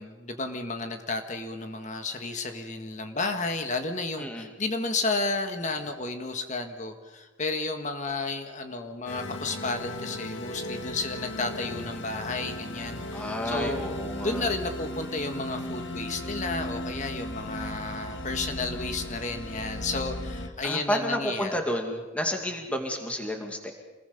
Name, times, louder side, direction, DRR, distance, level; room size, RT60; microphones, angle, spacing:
voice 1, 0.0-13.8 14.2-21.6, left 3 dB, 40° left, 5 dB, 1.7 m, -32 dB
voice 2, 4.2-4.5 13.1-14.5 20.6-23.7, equal, 5° left, 3 dB, 2.3 m, -31 dB
sound 1, 9.1-20.5, left 1 dB, 80° left, 1.8 m, -36 dB
27.5 x 21.0 x 5.4 m, 1.2 s
head